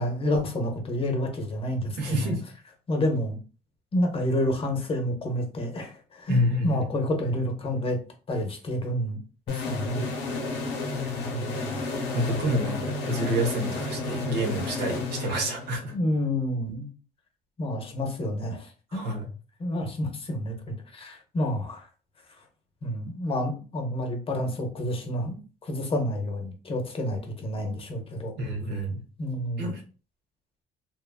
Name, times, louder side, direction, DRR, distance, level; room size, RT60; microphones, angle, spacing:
voice 1, 0.0-2.3 2.9-3.4 3.9-8.0 8.3-9.2 9.5-10.1 11.3-11.8 15.9-16.9 17.6-19.0 19.6-21.9 22.8-25.4 25.6-28.3 29.2-29.7, left 1 dB, 35° left, 3 dB, 0.7 m, -29 dB
voice 2, 2.0-2.4 6.3-7.0 12.1-15.9 18.9-19.3 28.4-29.0 29.6-29.8, equal, 80° right, 2 dB, 1.0 m, -28 dB
sound 1, 9.5-16.0, left 3 dB, 90° left, 0.8 m, -32 dB
2.9 x 2.3 x 2.3 m, 0.36 s
cardioid pair, 110°, 17 cm